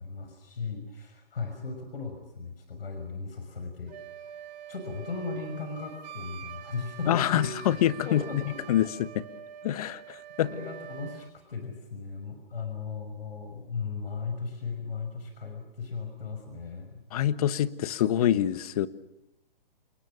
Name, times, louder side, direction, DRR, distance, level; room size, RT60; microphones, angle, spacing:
voice 1, 0.0-3.9 4.7-7.8 8.0-8.6 10.4-17.0, left 4 dB, 75° left, 5 dB, 6.0 m, -37 dB
Wind instrument woodwind instrument, 3.9-11.3, right 9 dB, 45° right, 3.2 m, -45 dB
voice 2, 7.1-8.4 8.7-9.2 9.6-10.5 17.1-18.9, left 11 dB, 40° left, 15 dB, 1.3 m, -26 dB
29.5 x 21.5 x 6.3 m, 0.89 s
hypercardioid pair, 150°, 29 cm